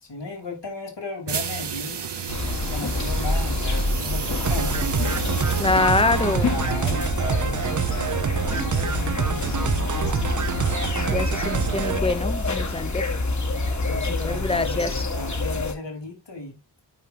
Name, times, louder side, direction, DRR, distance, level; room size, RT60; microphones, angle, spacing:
voice 1, 0.0-5.6 6.4-10.3 13.8-16.8, left 2 dB, 65° left, 2.6 m, -36 dB
sound 1, 1.3-6.9, right 7 dB, 60° right, 0.9 m, -33 dB
sound 2, 2.3-15.7, left 2 dB, 40° left, 1.1 m, -27 dB
sound 3, 4.4-12.0, right 7 dB, 40° right, 0.6 m, -26 dB
voice 2, 5.6-6.6 11.1-13.0 14.1-15.0, left 3 dB, 15° left, 0.6 m, -25 dB
5.6 x 4.9 x 3.7 m
wide cardioid pair, 85°, 46 cm